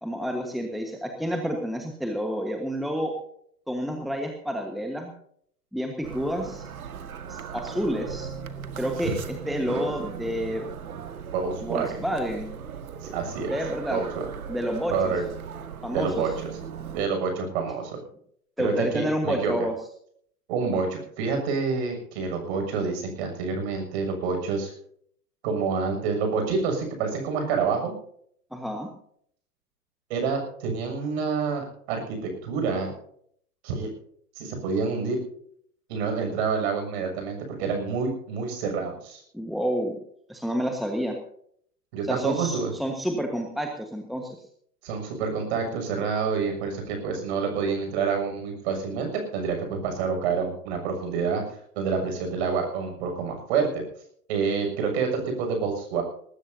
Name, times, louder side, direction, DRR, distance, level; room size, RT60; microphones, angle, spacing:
voice 1, 0.0-3.1 3.7-5.1 5.7-6.6 7.3-8.3 8.8-10.6 11.6-12.6 13.5-14.0 14.5-15.1 15.8-16.2 18.6-19.7 28.5-28.9 39.3-40.0 40.3-41.1 42.1-44.4, equal, ahead, 3 dB, 1.4 m, -29 dB
sound 1, 6.0-17.0, right 7 dB, 65° right, 1.9 m, -38 dB
voice 2, 11.3-12.0 13.0-13.6 13.9-14.3 14.9-15.2 15.9-16.3 16.9-18.0 18.6-19.5 20.5-24.7 25.4-27.9 30.1-32.9 33.6-33.9 34.4-35.2 35.9-39.2 41.9-42.7 44.8-51.4 51.8-53.7 54.3-56.0, right 5 dB, 40° right, 4 dB, 6.9 m, -28 dB
20.0 x 19.0 x 2.8 m, 0.64 s
figure-of-eight pair, 115°, 47 cm